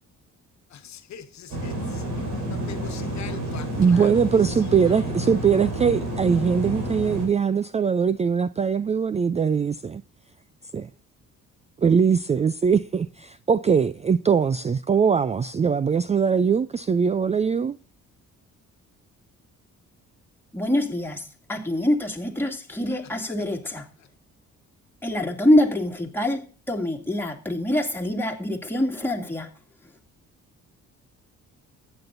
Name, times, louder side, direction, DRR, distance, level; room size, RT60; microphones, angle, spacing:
voice 1, 1.1-4.1 4.9-5.1 22.9-23.0 23.3-23.4, left 8 dB, 65° left, 1.3 m, -42 dB
sound 1, 1.5-7.3, right 1 dB, 85° right, 5.0 m, -30 dB
voice 2, 3.8-10.0 10.7-10.9 11.8-17.8, right 6 dB, 25° right, 0.4 m, -21 dB
voice 3, 20.5-21.2 21.5-23.8 25.0-29.5, left 1 dB, 5° left, 2.4 m, -25 dB
14.5 x 9.0 x 2.6 m
cardioid pair, 90°, 30 cm